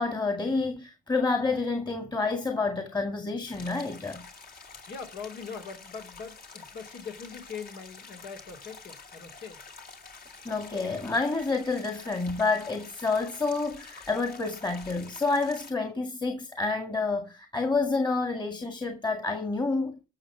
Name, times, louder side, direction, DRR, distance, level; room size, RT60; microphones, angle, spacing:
voice 1, 0.0-4.2 10.4-19.9, left 3 dB, 20° left, 2.1 m, -29 dB
sound 1, 3.5-15.7, left 4 dB, 45° left, 2.7 m, -48 dB
voice 2, 4.9-9.6, left 5 dB, 65° left, 2.9 m, -41 dB
13.5 x 6.4 x 6.0 m
cardioid pair, 90°, 20 cm